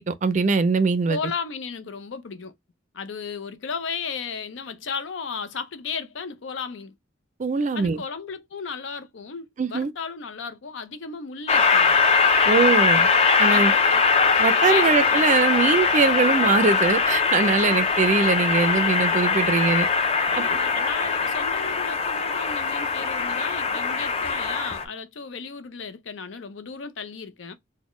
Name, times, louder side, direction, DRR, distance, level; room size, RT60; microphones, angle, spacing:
voice 1, 0.0-1.2 7.4-8.0 9.6-9.9 12.5-13.1 13.4-13.7 14.4-19.9 20.4-20.5, right 4 dB, 40° right, 0.4 m, -22 dB
voice 2, 1.1-2.5 2.9-6.9 7.7-12.0 13.5-14.0 14.7-15.3 20.3-27.5, left 5 dB, 80° left, 0.6 m, -34 dB
Train, 11.5-24.8, left 5 dB, 30° left, 0.4 m, -21 dB
4.1 x 2.1 x 3.0 m
head